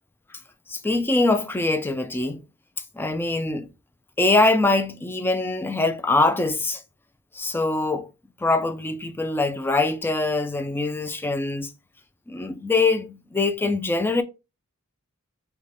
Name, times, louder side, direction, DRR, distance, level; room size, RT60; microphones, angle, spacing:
voice 1, 0.7-2.4 2.9-3.7 4.2-6.8 7.3-8.1 8.4-11.7 12.3-14.2, left 2 dB, 10° left, 0.3 m, -23 dB
3.3 x 2.3 x 3.8 m
head